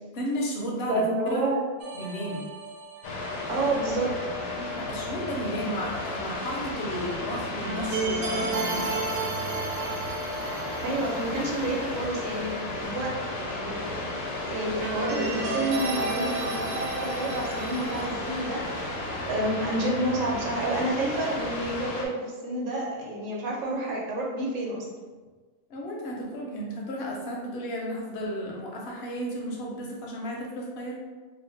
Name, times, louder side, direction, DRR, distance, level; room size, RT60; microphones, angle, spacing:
voice 1, 0.1-1.5 1.9-2.5 4.5-9.0 25.7-31.0, equal, 55° left, -2 dB, 0.8 m, -33 dB
voice 2, 0.9-1.6 3.5-4.1 10.8-13.1 13.4-14.1 14.5-19.0 19.2-24.8, right 1 dB, 65° right, -2 dB, 1.1 m, -29 dB
sound 1, 1.8-3.6 7.6-12.0 12.3-12.4 14.8-18.1, right 3 dB, 90° right, 1.1 m, -33 dB
sound 2, 3.0-22.1, left 2 dB, 70° left, 1.1 m, -34 dB
2.8 x 2.3 x 3.9 m, 1.4 s
omnidirectional pair, 1.6 m